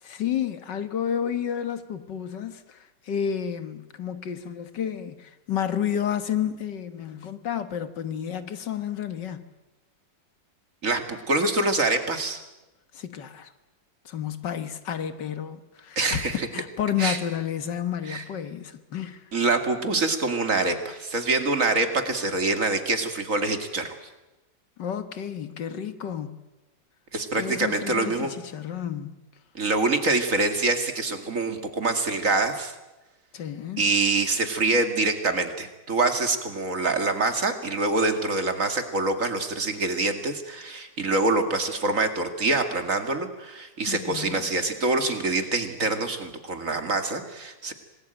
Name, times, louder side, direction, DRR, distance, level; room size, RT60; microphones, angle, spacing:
voice 1, 0.0-2.8 3.1-9.5 12.9-13.5 14.1-19.2 24.8-26.4 27.3-29.2 33.3-33.8 43.9-44.5, left 9 dB, 70° left, 2.0 m, -31 dB
voice 2, 10.8-12.4 16.0-16.5 17.0-17.2 18.1-18.2 19.3-24.0 27.1-28.3 29.5-32.7 33.8-47.7, right 3 dB, 45° right, 2.6 m, -25 dB
26.5 x 20.0 x 9.0 m
omnidirectional pair, 2.0 m